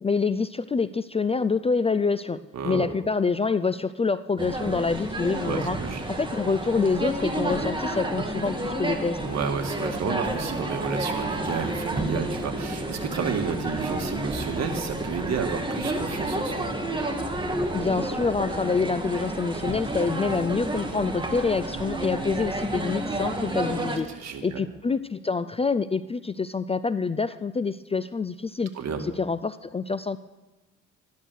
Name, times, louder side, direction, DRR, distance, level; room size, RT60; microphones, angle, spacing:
voice 1, 0.0-2.4 2.6-5.8 6.2-9.2 17.7-24.1 24.4-28.7 29.2-30.2, left 4 dB, 20° left, 14 dB, 0.4 m, -26 dB
voice 2, 2.5-2.9 5.4-6.0 9.2-16.7 23.8-24.6 28.7-29.0, right 5 dB, 60° right, 4 dB, 2.0 m, -31 dB
sound 1, 4.4-24.0, right 1 dB, 15° right, 2.0 m, -30 dB
13.0 x 11.0 x 6.4 m, 1.1 s
cardioid pair, 90°, 30 cm